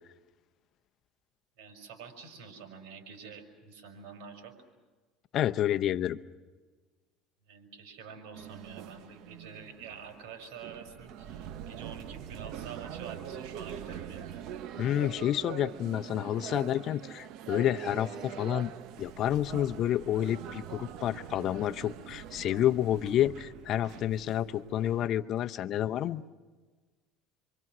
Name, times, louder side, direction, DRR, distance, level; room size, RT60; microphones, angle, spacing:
voice 1, 1.6-4.5 7.5-14.4 16.1-16.2, right 6 dB, 80° right, 5 dB, 5.6 m, -47 dB
voice 2, 5.3-6.2 14.8-18.7 19.0-26.2, left 11 dB, 50° left, 11 dB, 0.8 m, -29 dB
sound 1, 8.3-25.1, right 9 dB, 65° right, 1.1 m, -43 dB
27.5 x 25.0 x 6.2 m, 1.3 s
supercardioid pair, 115°, 0 cm